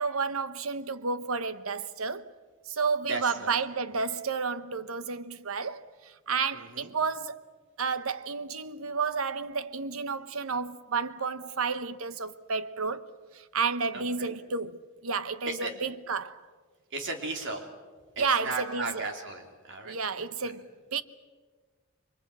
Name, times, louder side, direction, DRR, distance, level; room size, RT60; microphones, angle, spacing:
voice 1, 0.0-2.3 2.7-5.8 6.3-7.4 7.8-13.1 13.5-16.4 18.2-19.1 19.8-21.0, right 5 dB, 75° right, 1.1 m, -31 dB
voice 2, 3.1-3.6 6.5-6.9 13.9-14.3 15.5-15.7 16.9-17.7 18.2-20.0, right 3 dB, 60° right, 3.5 m, -35 dB
30.0 x 24.0 x 6.2 m
head